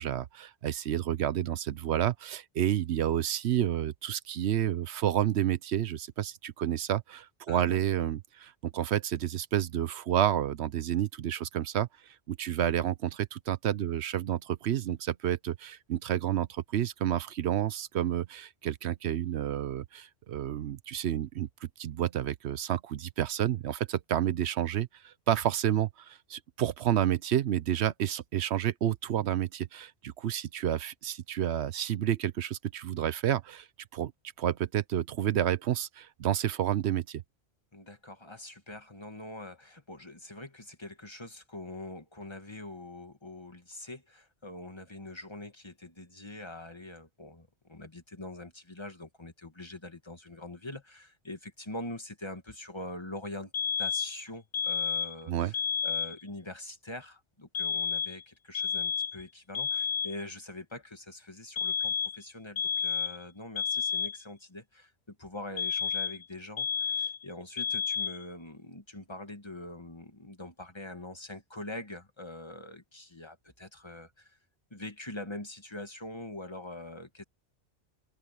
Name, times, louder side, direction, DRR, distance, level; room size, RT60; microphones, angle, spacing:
voice 1, 0.0-21.5 21.8-33.7 33.9-34.1 34.4-37.2 55.3-55.5, right 10 dB, 75° right, 1.0 m, -30 dB
voice 2, 7.5-7.8 37.7-53.5 53.8-55.6 55.8-74.4 74.7-77.2, left 1 dB, 25° left, 2.2 m, -43 dB
sound 1, 53.5-54.2 54.5-55.2 55.5-56.2 57.5-58.2 58.5-59.2 59.5-60.2 61.6-62.2 62.6-63.2 63.6-64.2 65.6-66.2 66.6-67.2 67.6-68.2, left 7 dB, 70° left, 1.1 m, -31 dB
omnidirectional pair, 1.1 m